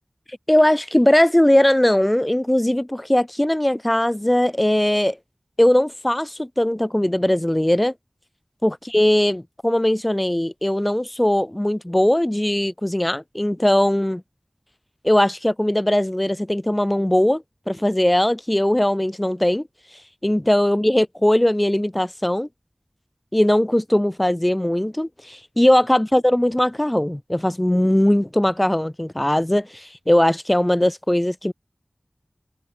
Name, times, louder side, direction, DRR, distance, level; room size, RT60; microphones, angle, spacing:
voice 1, 0.5-5.2 5.6-7.9 8.6-14.2 15.0-19.6 20.2-22.5 23.3-31.5, left 1 dB, 15° left, 2.9 m, -19 dB
wide cardioid pair, 60°, 0 cm